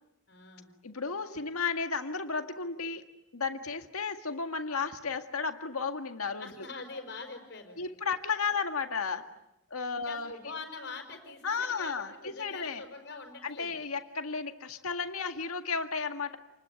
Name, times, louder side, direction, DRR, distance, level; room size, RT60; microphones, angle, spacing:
voice 1, 0.3-0.7 6.4-7.8 9.9-13.8, left 4 dB, 50° left, 5 dB, 5.5 m, -44 dB
voice 2, 0.8-3.0 3.3-6.7 7.8-9.3 9.7-10.3 11.4-12.8 13.4-16.4, left 5 dB, 90° left, 6 dB, 2.0 m, -33 dB
28.5 x 20.5 x 9.2 m, 0.87 s
head